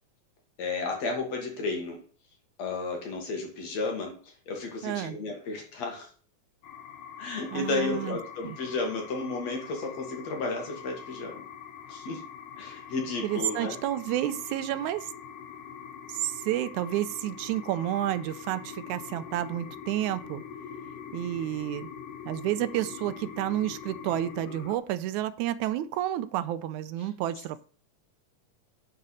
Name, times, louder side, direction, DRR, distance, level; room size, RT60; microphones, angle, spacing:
voice 1, 0.6-2.0 2.6-6.1 7.2-11.4 11.9-12.2 12.6-13.8, left 3 dB, 60° left, 2.8 m, -33 dB
voice 2, 4.8-5.2 7.5-8.2 8.4-8.6 13.2-15.1 16.1-20.4 21.1-21.9 22.3-27.6, right 13 dB, 80° right, 1.9 m, -30 dB
sound 1, 6.6-24.8, left 7 dB, 80° left, 2.3 m, -43 dB
9.9 x 4.6 x 6.3 m
omnidirectional pair, 3.6 m